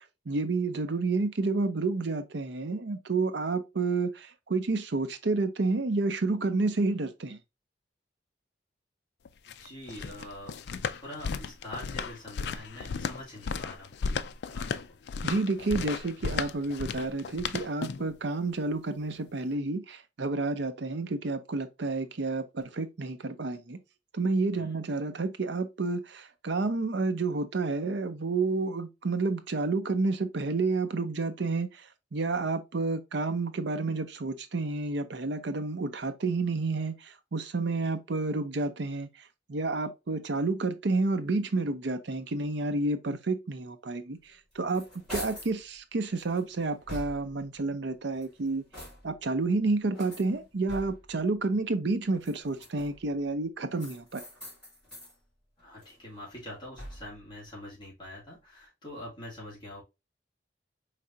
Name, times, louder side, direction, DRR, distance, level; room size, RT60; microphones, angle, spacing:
voice 1, 0.0-7.4 15.2-23.8 24.1-31.8 32.1-39.1 39.5-44.2 44.5-48.6 49.0-54.2, right 3 dB, 75° right, 0.6 m, -30 dB
sound 1, 9.3-18.1, left 5 dB, 65° left, 0.3 m, -35 dB
voice 2, 9.5-10.6 10.9-14.0 14.5-14.8 24.5-24.7 55.6-59.8, left 1 dB, 25° left, 2.0 m, -44 dB
sound 2, 44.3-45.6 46.2-47.5 48.0-49.3 49.9-51.2 52.1-53.1 53.8-55.2 55.6-57.2, left 1 dB, 5° left, 2.8 m, -45 dB
4.8 x 3.3 x 2.6 m
head